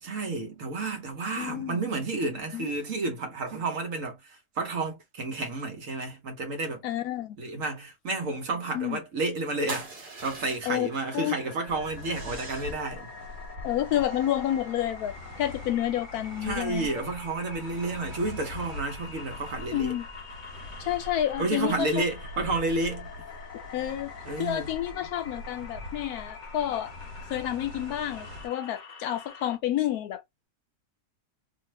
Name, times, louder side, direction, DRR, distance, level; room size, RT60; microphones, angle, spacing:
voice 1, 0.0-6.8 7.4-13.1 16.4-19.9 21.4-23.1 24.3-24.7, right 3 dB, 60° right, 1.1 m, -31 dB
voice 2, 1.4-1.8 2.5-2.7 6.8-7.4 8.7-9.0 10.7-10.9 11.1-11.3 13.6-16.9 19.7-20.1 20.8-21.9 23.7-24.1 24.4-26.9 27.2-30.2, left 12 dB, 75° left, 1.0 m, -29 dB
sound 1, 9.7-10.9 12.0-12.9 13.8-15.5, right 3 dB, 40° right, 1.0 m, -43 dB
sound 2, 10.8-29.6, left 4 dB, 60° left, 0.5 m, -45 dB
sound 3, 11.7-28.5, left 1 dB, 80° right, 1.3 m, -43 dB
2.6 x 2.5 x 3.1 m
omnidirectional pair, 1.7 m